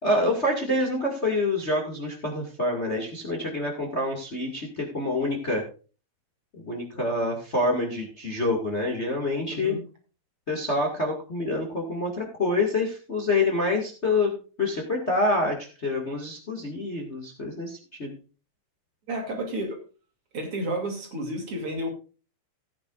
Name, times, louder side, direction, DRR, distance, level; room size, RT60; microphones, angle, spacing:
voice 1, 0.0-5.6 6.5-9.7 10.5-18.1, left 2 dB, 25° left, 1 dB, 1.9 m, -27 dB
voice 2, 9.5-9.8 19.1-19.8 20.3-21.9, right 1 dB, 50° right, 2 dB, 3.5 m, -31 dB
17.0 x 9.5 x 2.5 m, 0.36 s
omnidirectional pair, 3.5 m